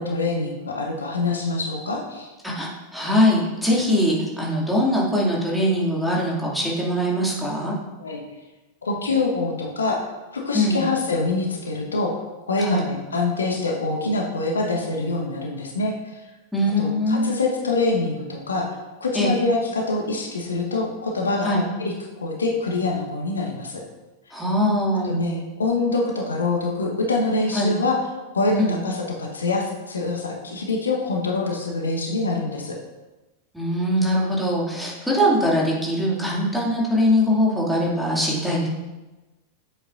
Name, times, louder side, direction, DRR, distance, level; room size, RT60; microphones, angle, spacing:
voice 1, 0.0-2.3 8.0-8.2 8.8-12.2 12.5-16.2 16.8-21.9 22.2-23.8 25.0-28.0 28.3-32.8, left 3 dB, 70° left, 0 dB, 1.1 m, -25 dB
voice 2, 2.4-7.8 10.5-10.8 12.6-12.9 16.5-17.3 19.1-19.4 21.4-21.7 24.3-25.2 27.5-27.8 28.6-28.8 33.5-38.7, equal, ahead, -5 dB, 2.4 m, -22 dB
10.0 x 7.9 x 2.6 m, 1.1 s
figure-of-eight pair, 90°, 0 cm